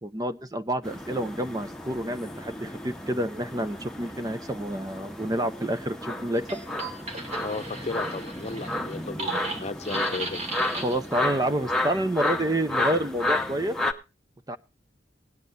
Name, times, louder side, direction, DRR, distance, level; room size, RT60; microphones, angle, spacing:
voice 1, 0.0-6.4 10.7-13.8 14.5-14.6, right 1 dB, 20° right, 11 dB, 0.7 m, -28 dB
sound 1, 0.8-13.9, left 1 dB, 5° left, 1.1 m, -32 dB
sound 2, 6.4-11.2, right 2 dB, 40° right, 2.9 m, -36 dB
voice 2, 7.4-10.4, left 3 dB, 40° left, 9 dB, 0.8 m, -35 dB
19.5 x 9.8 x 2.6 m, 0.27 s
head